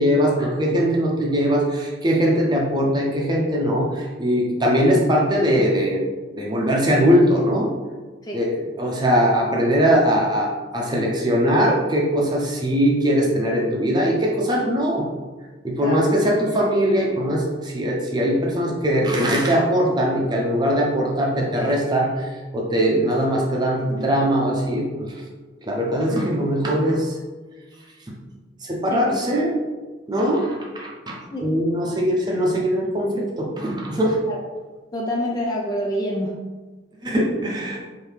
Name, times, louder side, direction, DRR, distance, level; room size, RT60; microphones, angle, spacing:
voice 1, 0.0-6.1 6.3-7.7 8.3-15.0 15.6-25.1 25.6-27.2 28.6-29.5 30.1-34.2 37.0-37.8, equal, 20° right, -2 dB, 0.7 m, -21 dB
voice 2, 34.9-36.4, equal, 20° left, -2 dB, 0.4 m, -27 dB
4.9 x 2.7 x 3.2 m, 1.3 s
head